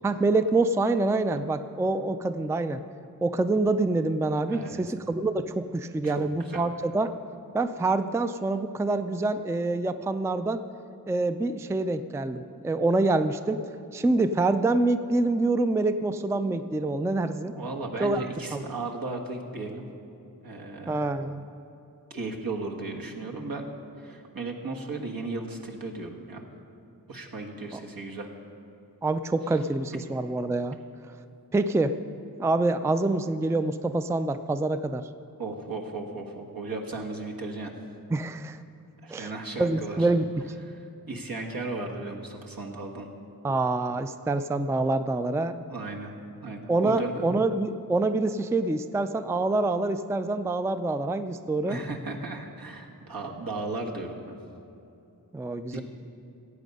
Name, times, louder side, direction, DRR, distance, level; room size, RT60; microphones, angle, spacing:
voice 1, 0.0-2.8 3.2-7.1 7.5-10.6 11.1-13.6 13.9-17.5 18.0-18.3 18.5-18.6 20.9-21.4 29.0-30.8 31.5-32.0 32.4-35.1 38.1-38.6 39.1-39.3 39.6-40.5 43.4-45.6 46.7-51.8 55.3-55.8, right 2 dB, 10° right, 10 dB, 0.4 m, -26 dB
voice 2, 4.5-4.8 6.0-6.6 17.4-19.9 20.4-21.1 22.1-23.7 24.0-26.4 27.1-28.3 35.4-37.7 39.0-40.1 40.6-40.8 41.1-43.1 45.6-46.1 46.4-47.4 51.6-54.3 55.7-55.8, right 3 dB, 75° right, 0 dB, 1.4 m, -35 dB
15.0 x 8.4 x 5.3 m, 2.7 s
wide cardioid pair, 60°, 36 cm